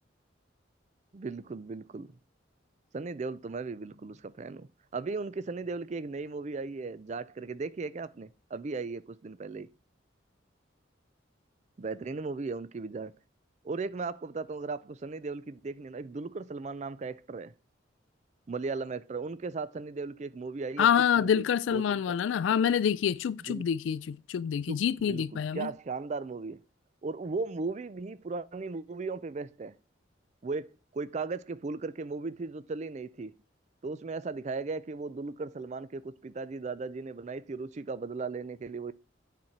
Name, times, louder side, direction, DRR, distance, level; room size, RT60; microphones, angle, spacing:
voice 1, 1.1-2.1 2.9-9.7 11.8-13.1 13.6-17.5 18.5-20.9 21.2-21.5 21.7-22.2 23.5-23.6 24.7-26.6 27.0-29.7 30.4-33.4 33.8-38.9, right 4 dB, 35° right, 0.4 m, -37 dB
voice 2, 20.8-25.7, left 8 dB, 80° left, 0.3 m, -27 dB
9.3 x 4.3 x 5.9 m
head